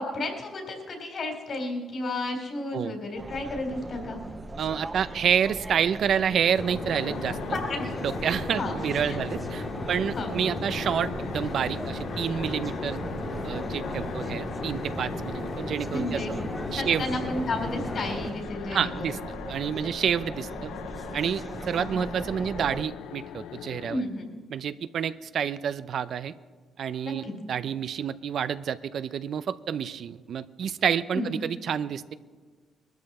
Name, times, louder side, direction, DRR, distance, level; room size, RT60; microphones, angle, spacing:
voice 1, 0.0-4.2 7.5-7.9 8.5-8.7 9.0-9.2 10.1-10.3 15.9-16.3 16.7-19.2 21.7-22.1 23.9-24.2 27.0-27.3 31.1-31.3, left 2 dB, 55° left, 3 dB, 3.5 m, -32 dB
sound 1, 3.1-22.8, right 2 dB, 20° right, 1.0 m, -40 dB
voice 2, 4.6-7.6 8.0-13.0 13.4-16.2 16.7-17.1 18.7-19.2 19.5-20.7 21.1-24.0 24.5-26.3 26.8-32.1, right 8 dB, 65° right, 14 dB, 0.5 m, -29 dB
sound 2, 6.6-18.3, left 2 dB, 30° left, 2.1 m, -35 dB
sound 3, 6.9-24.0, left 10 dB, 85° left, 0.5 m, -42 dB
20.5 x 13.0 x 4.2 m, 1.5 s
cardioid pair, 90°, 0 cm